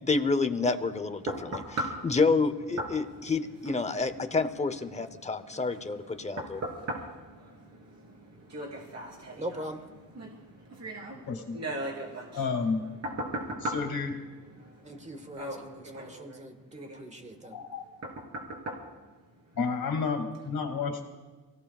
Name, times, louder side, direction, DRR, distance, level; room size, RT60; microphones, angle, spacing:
voice 1, 0.0-6.6, left 4 dB, 20° left, 10 dB, 0.8 m, -29 dB
sound 1, 0.6-19.8 20.3-20.5, right 1 dB, 45° right, 3.4 m, -40 dB
voice 2, 9.4-9.8 14.8-17.6, right 1 dB, 20° right, 6 dB, 1.5 m, -41 dB
voice 3, 11.1-11.6 12.3-12.8 13.6-14.1 17.5-17.8 19.6-21.0, left 5 dB, 85° left, 4 dB, 2.3 m, -31 dB
29.5 x 17.0 x 2.4 m, 1.4 s
wide cardioid pair, 155°, 35 cm